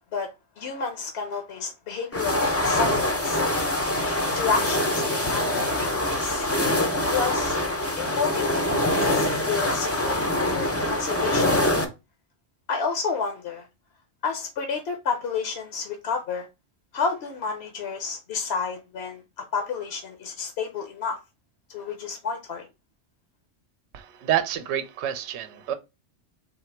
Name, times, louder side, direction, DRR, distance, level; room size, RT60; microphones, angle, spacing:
voice 1, 0.6-3.7 4.3-6.5 7.1-7.6 8.0-11.5 12.7-13.7 14.2-16.5 16.9-21.2 21.7-22.7, left 5 dB, 65° left, 0.9 m, -30 dB
sound 1, 2.1-11.8, left 1 dB, 20° left, 0.4 m, -24 dB
voice 2, 23.9-25.7, right 10 dB, 70° right, 0.8 m, -28 dB
4.1 x 2.8 x 4.4 m
omnidirectional pair, 1.2 m